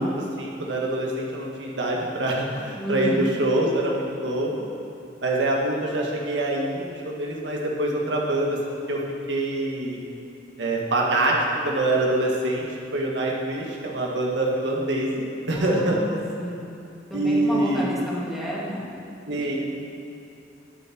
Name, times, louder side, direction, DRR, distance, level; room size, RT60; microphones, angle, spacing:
voice 1, 0.0-4.6 5.2-9.0 9.3-10.0 10.6-11.4 11.6-12.7 12.9-16.0 17.1-17.9 19.3-19.6, right 1 dB, 70° right, -2 dB, 1.8 m, -25 dB
voice 2, 2.8-3.3 15.5-16.7 17.1-18.9 19.3-19.6, equal, ahead, -7 dB, 2.7 m, -31 dB
20.5 x 7.5 x 4.5 m, 2.8 s
head